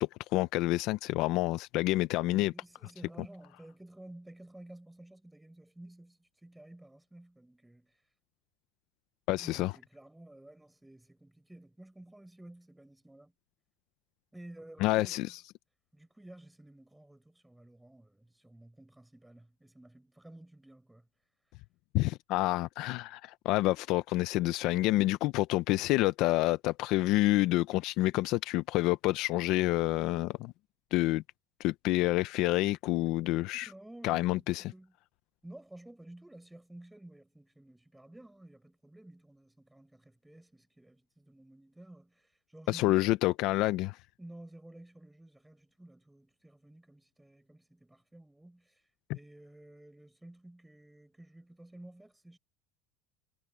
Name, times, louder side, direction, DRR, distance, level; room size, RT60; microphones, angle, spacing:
voice 1, 0.0-2.5 9.3-9.7 14.8-15.4 21.9-30.5 30.9-31.2 31.6-33.7 34.0-34.7 42.7-44.0, left 18 dB, 50° left, 0.5 m, -28 dB
voice 2, 2.2-7.9 9.4-13.3 14.3-15.3 15.9-21.1 33.6-34.9 35.4-43.2 44.2-48.8 49.1-52.4, right 1 dB, 5° right, 7.0 m, -53 dB
cardioid pair, 175°, 0 cm